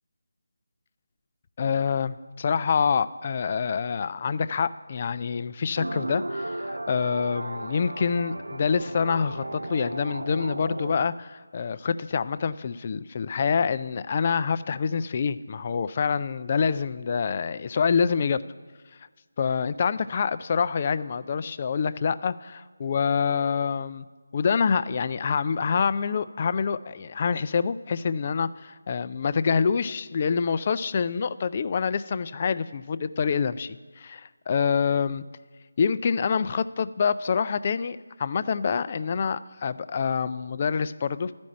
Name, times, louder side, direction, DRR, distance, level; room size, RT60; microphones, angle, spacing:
voice 1, 1.6-18.4 19.4-24.0 24.3-35.2 35.8-41.3, left 6 dB, 35° left, 15 dB, 0.3 m, -26 dB
sound 1, 5.8-11.1, right 1 dB, 80° right, 0.4 m, -34 dB
12.0 x 5.2 x 8.5 m, 1.4 s
figure-of-eight pair, 160°, 0 cm